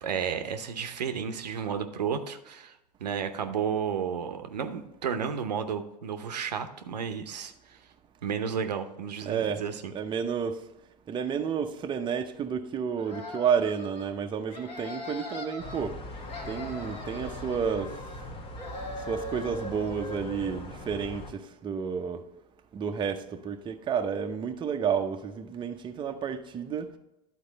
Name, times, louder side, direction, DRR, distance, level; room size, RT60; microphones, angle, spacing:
voice 1, 0.0-7.8 8.2-9.8, right 7 dB, 75° right, 0.7 m, -32 dB
voice 2, 9.2-10.7 11.1-16.0 16.5-18.3 19.0-22.3 22.7-26.9, right 7 dB, 20° right, 0.7 m, -31 dB
sound 1, 13.0-14.1 14.5-15.8 16.1-18.3 18.6-20.6, left 2 dB, 70° left, 2.0 m, -41 dB
sound 2, 15.6-21.3, left 1 dB, 25° left, 1.1 m, -41 dB
11.0 x 4.3 x 4.0 m
figure-of-eight pair, 90°, 21 cm